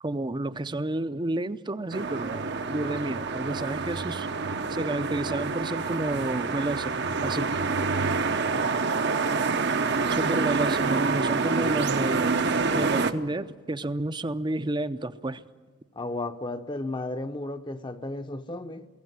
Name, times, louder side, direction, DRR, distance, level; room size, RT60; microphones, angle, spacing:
voice 1, 0.0-4.3 4.7-7.5 10.1-12.4 12.8-15.4, right 2 dB, 25° right, 0.6 m, -31 dB
sound 1, 1.9-13.1, right 4 dB, 60° right, 0.9 m, -27 dB
voice 2, 16.0-18.9, left 2 dB, 25° left, 0.8 m, -34 dB
22.5 x 17.0 x 9.5 m
head